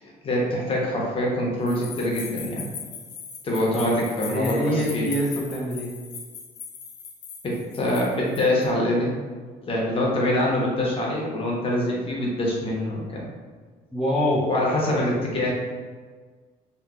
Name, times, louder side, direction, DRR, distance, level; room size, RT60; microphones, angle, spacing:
voice 1, 0.0-2.7 3.4-5.1 7.4-9.2 9.7-13.2 14.5-15.5, left 1 dB, 35° left, -3 dB, 0.7 m, -25 dB
sound 1, 1.7-8.6, left 5 dB, 85° left, 0.6 m, -39 dB
voice 2, 4.3-5.9 13.9-14.5, equal, ahead, -7 dB, 0.4 m, -25 dB
2.9 x 2.1 x 2.3 m, 1.5 s
cardioid pair, 110°, 17 cm